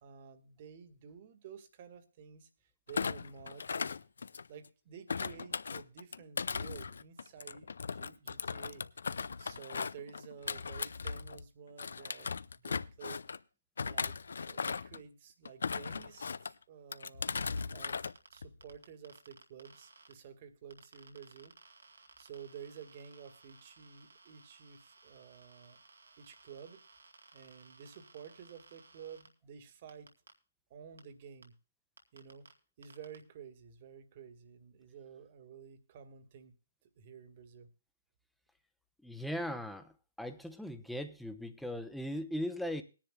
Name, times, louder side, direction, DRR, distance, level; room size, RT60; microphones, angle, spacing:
voice 1, 0.0-2.5 2.9-4.0 4.5-8.9 9.4-13.2 13.8-14.2 14.4-17.4 17.7-21.9 22.2-25.8 26.2-26.8 27.3-30.1 30.7-31.6 32.1-32.5 32.8-36.5 37.0-37.7, right 7 dB, 40° right, 1.7 m, -52 dB
Thump thud, 2.9-4.7 5.1-11.4 11.8-13.4 13.8-15.0 15.4-16.5 16.9-18.1 18.4-18.8, left 5 dB, 70° left, 0.5 m, -38 dB
sound 1, 17.4-17.6 18.1-20.1 20.7-29.3 29.9-30.3 31.0-31.1 31.4-31.5 32.0-32.5 32.8-33.2, right 4 dB, 80° right, 2.3 m, -59 dB
voice 2, 39.0-39.9 40.2-42.8, equal, ahead, 0.9 m, -38 dB
20.5 x 10.5 x 2.2 m
hypercardioid pair, 145°, 0 cm